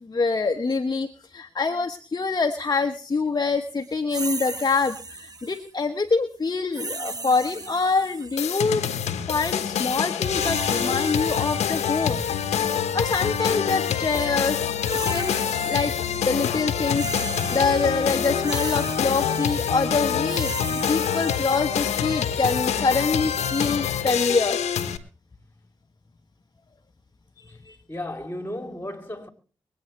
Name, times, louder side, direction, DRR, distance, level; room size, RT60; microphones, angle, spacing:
voice 1, 0.1-8.8 9.3-12.2 12.9-15.9 16.2-20.5 20.9-24.6 27.7-27.8, left 4 dB, 35° left, 1.3 m, -25 dB
sound 1, 4.1-5.7 6.7-8.6 10.0-12.5 13.2-13.4 14.5-16.1 16.4-21.5, right 3 dB, 35° right, 1.3 m, -36 dB
sound 2, 8.4-25.0, left 8 dB, 85° left, 1.1 m, -26 dB
voice 2, 27.9-29.3, left 1 dB, 20° left, 3.5 m, -34 dB
24.0 x 9.3 x 3.2 m
supercardioid pair, 40°, 11 cm